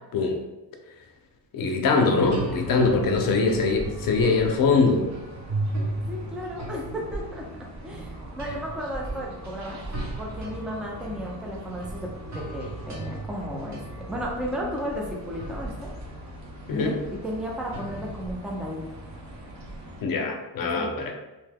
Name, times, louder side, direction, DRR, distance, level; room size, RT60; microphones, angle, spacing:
voice 1, 1.5-5.0 16.7-17.0 20.0-21.1, left 4 dB, 50° left, 3 dB, 0.6 m, -22 dB
sound 1, 2.1-20.0, right 1 dB, 40° right, 0.8 m, -36 dB
voice 2, 2.5-3.7 6.1-7.5 7.8-9.8 10.2-15.9 16.7-18.8 20.6-20.9, equal, ahead, -2 dB, 0.4 m, -34 dB
2.7 x 2.2 x 3.4 m, 1.1 s
cardioid pair, 125°, 42 cm